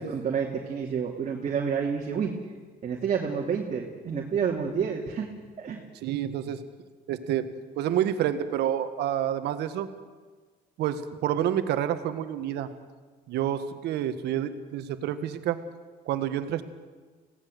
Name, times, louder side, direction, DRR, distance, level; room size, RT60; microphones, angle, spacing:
voice 1, 0.0-2.3 2.8-5.3 5.6-5.8, right 6 dB, 45° right, -1 dB, 2.8 m, -29 dB
voice 2, 6.0-6.6 7.1-7.5 7.8-9.9 10.8-12.7 13.3-15.6 16.0-16.6, right 10 dB, 80° right, 10 dB, 1.7 m, -28 dB
25.5 x 17.5 x 7.9 m, 1.4 s
cardioid pair, 110°, 17 cm